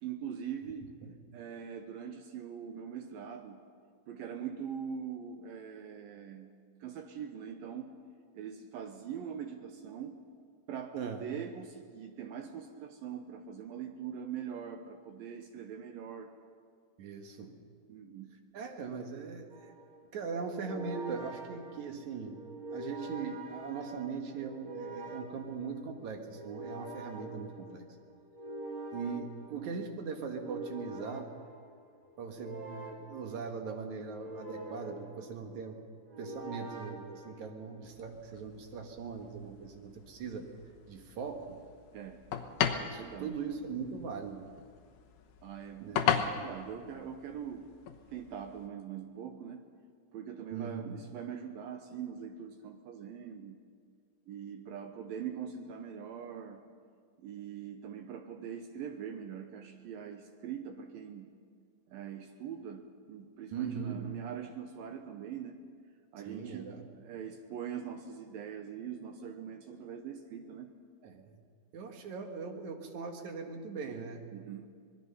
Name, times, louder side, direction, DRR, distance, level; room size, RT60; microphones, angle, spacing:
voice 1, 0.0-0.9 1.3-3.6 4.1-6.5 6.8-7.9 8.3-10.2 10.7-16.3 17.9-18.3 39.6-39.7 41.9-42.2 42.9-43.3 45.4-47.7 48.1-49.6 50.1-53.6 54.3-56.6 57.2-61.3 61.9-65.6 66.1-70.7 74.3-74.7, right 8 dB, 75° right, 6 dB, 2.3 m, -42 dB
voice 2, 17.0-17.5 18.5-19.7 20.1-22.5 22.7-27.8 28.9-31.3 32.2-35.8 36.2-40.5 40.9-41.6 42.9-44.4 45.8-46.1 50.5-51.0 63.5-64.1 66.3-66.8 71.0-71.4 71.7-74.3, right 5 dB, 60° right, 4 dB, 2.2 m, -40 dB
sound 1, 19.5-37.9, right 1 dB, 40° right, 2.0 m, -46 dB
sound 2, 37.8-48.7, left 8 dB, 65° left, 2.4 m, -38 dB
25.5 x 20.0 x 5.6 m, 2.1 s
omnidirectional pair, 4.9 m